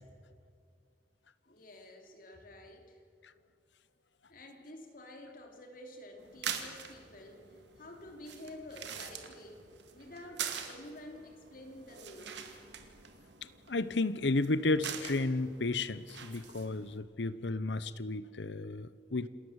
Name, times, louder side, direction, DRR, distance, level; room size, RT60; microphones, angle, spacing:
voice 1, 1.5-3.0 4.3-9.6 9.9-12.5, left 1 dB, 50° left, 4 dB, 3.3 m, -50 dB
sound 1, 6.2-17.0, right 7 dB, 75° right, 2.3 m, -45 dB
voice 2, 13.4-19.3, left 2 dB, 75° left, 16 dB, 0.9 m, -33 dB
28.0 x 13.5 x 8.2 m, 2.3 s
head